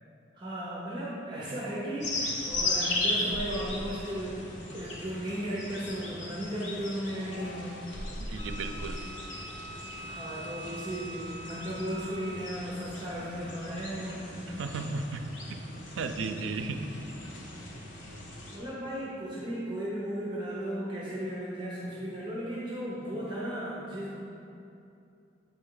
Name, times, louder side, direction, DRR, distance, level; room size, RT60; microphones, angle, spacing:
voice 1, 0.3-7.8 10.0-14.4 18.5-24.3, equal, 25° right, -7 dB, 0.9 m, -35 dB
sound 1, 2.0-18.6, left 2 dB, 75° left, 1.1 m, -37 dB
Wind instrument woodwind instrument, 8.3-12.6, right 1 dB, 30° left, 0.4 m, -44 dB
voice 2, 8.3-9.0 14.5-15.2 15.5-15.6 16.0-16.9, right 3 dB, 90° right, 7 dB, 0.4 m, -34 dB
8.0 x 4.4 x 3.8 m, 2.6 s
head